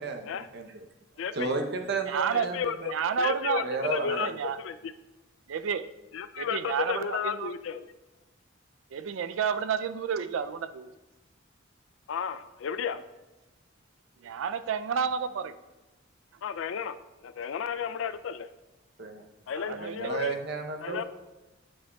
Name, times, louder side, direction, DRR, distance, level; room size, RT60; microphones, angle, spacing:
voice 1, 0.0-0.8 1.3-2.9 3.6-4.4 19.0-19.2 19.7-21.0, right 3 dB, 55° right, 4 dB, 0.7 m, -33 dB
voice 2, 1.2-1.5 2.3-4.9 6.1-7.9 12.1-13.0 16.4-18.5 19.5-20.4 20.8-21.0, left 7 dB, 75° left, 12 dB, 0.4 m, -33 dB
voice 3, 2.1-2.5 2.9-3.6 4.1-4.6 5.5-5.9 6.4-7.5 8.9-10.9 14.2-15.6 19.6-20.1, right 6 dB, 75° right, 12 dB, 0.4 m, -30 dB
9.7 x 8.5 x 2.3 m, 1.1 s
head